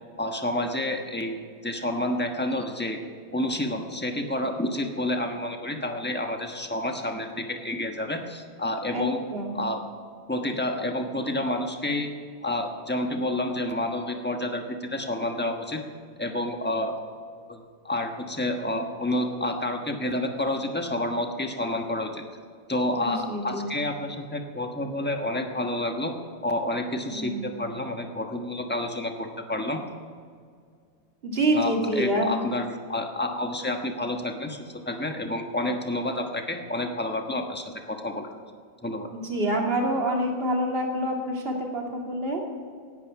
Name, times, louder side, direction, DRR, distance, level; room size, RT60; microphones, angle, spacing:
voice 1, 0.2-3.0 3.3-9.2 9.5-9.8 10.3-12.1 12.4-15.8 16.2-17.0 17.5-22.2 22.7-26.1 26.4-29.8 31.5-38.3 38.8-39.1, left 1 dB, 10° left, 4 dB, 0.7 m, -29 dB
voice 2, 8.9-9.6 23.0-23.6 27.1-27.4 31.2-32.4 39.1-42.4, right 1 dB, 30° right, 0 dB, 2.5 m, -27 dB
17.5 x 11.0 x 5.9 m, 2.2 s
omnidirectional pair, 2.3 m